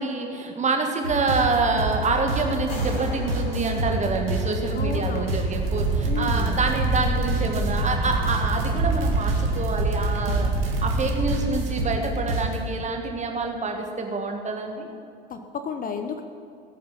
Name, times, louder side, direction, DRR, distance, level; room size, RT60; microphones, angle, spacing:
voice 1, 0.0-10.5 10.8-14.9, right 3 dB, 25° right, 4 dB, 1.8 m, -27 dB
sound 1, 1.0-12.6, right 1 dB, 80° right, 1.6 m, -28 dB
sound 2, 2.5-4.9, left 2 dB, 70° left, 3.4 m, -41 dB
voice 2, 4.7-5.4 6.1-6.6 15.3-16.2, left 6 dB, 30° left, 8 dB, 0.8 m, -32 dB
sound 3, 5.5-11.2, right 4 dB, 50° right, 2.2 m, -27 dB
17.5 x 8.7 x 5.7 m, 2.3 s
figure-of-eight pair, 65°, 29 cm